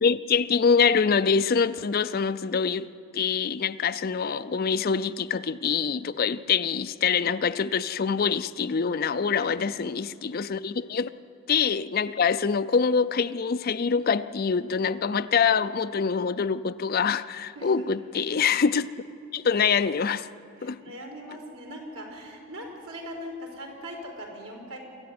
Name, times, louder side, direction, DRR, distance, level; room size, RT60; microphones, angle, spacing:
voice 1, 0.0-2.9 3.1-11.1 11.5-18.9 19.3-20.3 20.6-20.8, left 6 dB, 40° left, 13 dB, 0.4 m, -25 dB
voice 2, 17.5-18.1 20.6-24.8, equal, 75° right, 0 dB, 4.5 m, -40 dB
24.5 x 14.0 x 9.5 m, 2.5 s
head